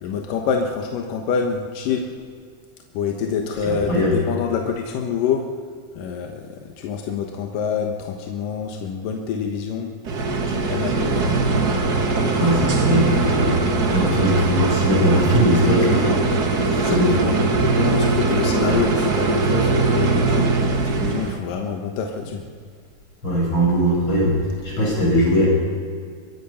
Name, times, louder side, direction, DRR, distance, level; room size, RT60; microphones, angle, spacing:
voice 1, 0.0-2.1 2.9-5.4 6.0-9.9 10.5-11.7 12.2-12.9 16.7-22.4 24.7-24.9, left 6 dB, 85° left, 3 dB, 2.9 m, -27 dB
voice 2, 3.6-4.2 12.3-13.6 13.9-16.2 16.7-17.1 18.7-18.8 23.2-24.4 24.6-25.5, equal, 35° left, -3 dB, 7.8 m, -20 dB
sound 1, 10.1-21.4, right 3 dB, 50° right, 1.2 m, -21 dB
23.0 x 21.5 x 5.7 m, 2.1 s
omnidirectional pair, 3.8 m